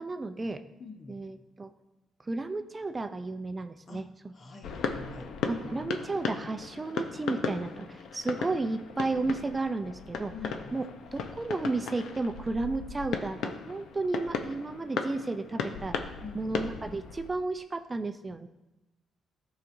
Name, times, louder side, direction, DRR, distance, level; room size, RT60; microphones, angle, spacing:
voice 1, 0.0-0.6 1.1-1.7 2.2-4.1 5.5-10.3 10.7-10.8 11.1-18.5, right 3 dB, 25° right, 8 dB, 0.4 m, -33 dB
voice 2, 0.8-1.2 3.9-5.3 5.6-5.9 10.3-10.8 16.2-16.6, left 4 dB, 45° left, 5 dB, 0.9 m, -45 dB
sound 1, 4.6-17.3, left 5 dB, 80° left, 0.6 m, -36 dB
13.0 x 4.9 x 2.6 m, 1.0 s
cardioid pair, 90°, 0 cm